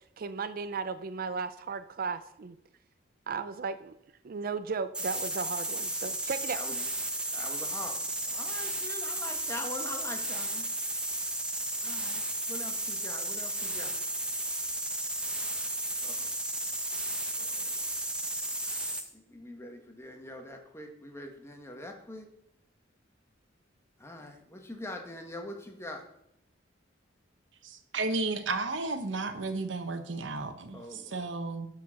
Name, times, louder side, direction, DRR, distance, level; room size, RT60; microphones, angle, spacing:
voice 1, 0.2-2.6 3.3-3.9 4.2-6.6, right 5 dB, 50° right, 11 dB, 0.4 m, -35 dB
sound 1, 4.9-19.1, right 1 dB, 5° right, 1.0 m, -34 dB
voice 2, 6.5-6.8 7.3-10.7 11.8-12.2 12.5-14.0 16.0-16.3 17.4-17.8 19.1-22.3 24.0-26.1 30.7-31.2, left 1 dB, 15° left, 3 dB, 1.4 m, -43 dB
voice 3, 27.6-31.7, right 3 dB, 80° right, 8 dB, 1.1 m, -33 dB
12.0 x 4.7 x 6.2 m, 0.78 s
head